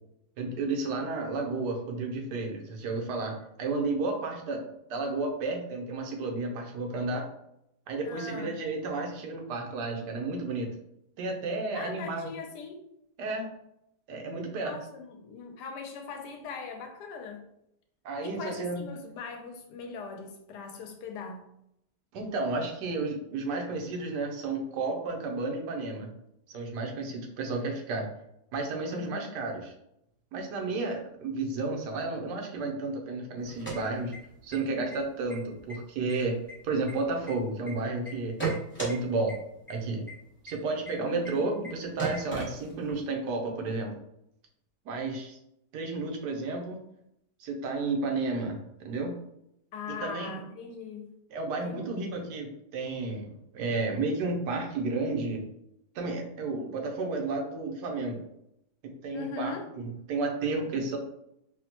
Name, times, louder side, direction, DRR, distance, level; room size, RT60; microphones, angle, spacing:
voice 1, 0.4-7.3 7.9-10.7 11.2-12.3 13.2-13.4 14.1-14.8 18.0-18.9 22.1-26.1 26.5-28.1 28.5-29.7 30.3-34.1 34.4-36.4 36.6-38.4 38.8-39.4 39.7-40.0 40.4-44.0 44.8-45.4 45.7-46.8 47.4-49.1 49.9-50.4 51.3-55.4 55.9-58.2 59.0-61.0, right 3 dB, 80° right, 2 dB, 1.3 m, -32 dB
voice 2, 8.0-8.6 11.7-12.8 14.6-17.4 18.2-21.4 28.9-29.3 41.1-41.5 49.7-51.1 51.6-51.9 59.1-59.7, left 5 dB, 80° left, 4 dB, 1.2 m, -40 dB
sound 1, 33.4-34.6 34.9-35.0 35.3-35.7 36.1-37.7 38.1-38.9 39.3-39.4 39.7-39.8 40.1-40.2 40.5-40.6 40.9-41.0 41.2-41.3 41.6-41.7 42.0-43.0, right 4 dB, 10° left, 0.7 m, -34 dB
4.1 x 2.1 x 2.8 m, 0.79 s
omnidirectional pair, 1.8 m